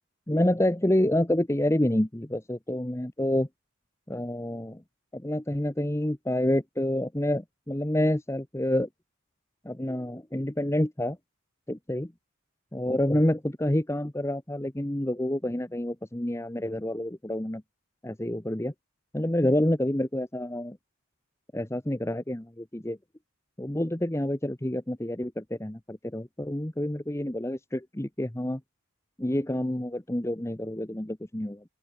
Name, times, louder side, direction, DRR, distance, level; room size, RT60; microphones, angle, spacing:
voice 1, 0.3-3.5 4.1-4.8 5.1-8.9 9.6-11.2 11.7-12.1 12.7-17.6 18.0-18.7 19.1-20.8 21.5-23.0 23.6-28.6 29.2-31.6, left 1 dB, 10° left, 0.8 m, -28 dB
open air
head